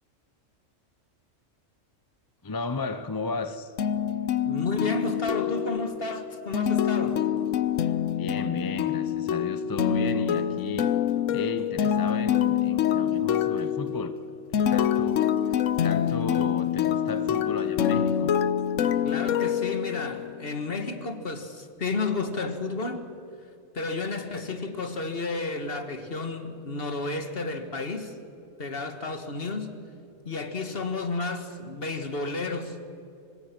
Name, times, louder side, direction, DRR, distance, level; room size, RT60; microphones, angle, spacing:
voice 1, 2.4-3.7 8.2-11.0 11.3-14.2 14.6-15.5 15.8-18.3, left 3 dB, 20° left, 11 dB, 0.6 m, -34 dB
sound 1, 3.8-20.5, left 9 dB, 75° left, 1.1 m, -26 dB
voice 2, 4.5-7.2 19.0-23.1 23.7-28.2 28.6-29.7 30.3-32.8, left 3 dB, 45° left, 8 dB, 1.7 m, -32 dB
24.5 x 20.0 x 6.0 m, 2.7 s
omnidirectional pair, 1.4 m